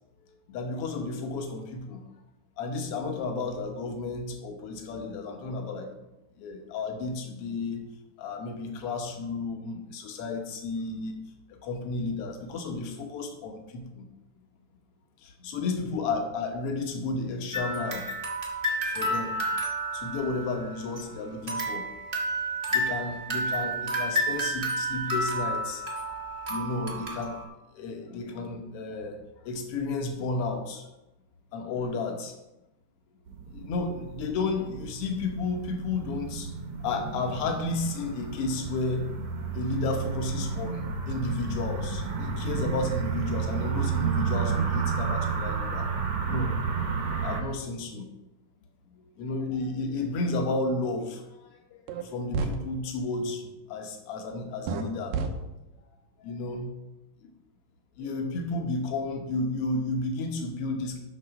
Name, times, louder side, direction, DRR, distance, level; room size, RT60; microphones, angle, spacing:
voice 1, 0.3-2.0 2.6-5.9 6.4-7.9 8.2-11.2 11.5-14.0 15.2-18.1 18.8-19.4 19.9-21.9 22.7-25.8 26.5-27.4 27.7-29.2 29.4-30.9 31.5-32.3 33.5-36.5 36.8-39.1 39.5-45.9 46.2-46.5 47.2-48.1 48.9-55.2 56.2-56.7 57.2-57.3 58.0-61.0, left 3 dB, 60° left, 3 dB, 1.8 m, -32 dB
sound 1, 17.5-21.0 21.5-27.4, right 1 dB, 45° right, 0.7 m, -30 dB
sound 2, 33.3-47.4, right 5 dB, 65° right, 2.3 m, -31 dB
sound 3, 51.9-52.0 52.3-52.6 54.7-54.8 55.1-55.3, right 5 dB, 85° right, 2.6 m, -28 dB
12.5 x 4.1 x 5.9 m, 0.94 s
omnidirectional pair, 3.8 m